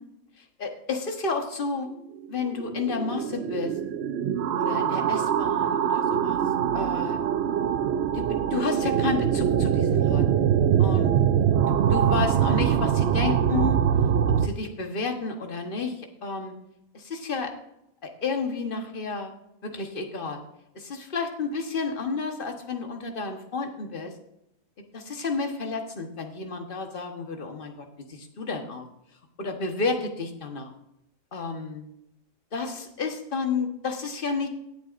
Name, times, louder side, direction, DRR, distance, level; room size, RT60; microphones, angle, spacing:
voice 1, 0.4-1.9 2.3-3.7 4.6-6.4 6.7-7.2 8.1-10.5 10.8-11.1 11.9-13.8 14.4-16.5 16.9-17.5 18.0-19.3 19.6-20.4 20.7-24.1 24.9-28.9 29.4-30.7 31.3-31.9 32.5-34.5, left 4 dB, 40° left, 4 dB, 1.3 m, -31 dB
sound 1, 2.2-14.5, right 9 dB, 65° right, 0.6 m, -23 dB
19.5 x 8.1 x 2.5 m, 0.81 s
omnidirectional pair, 1.5 m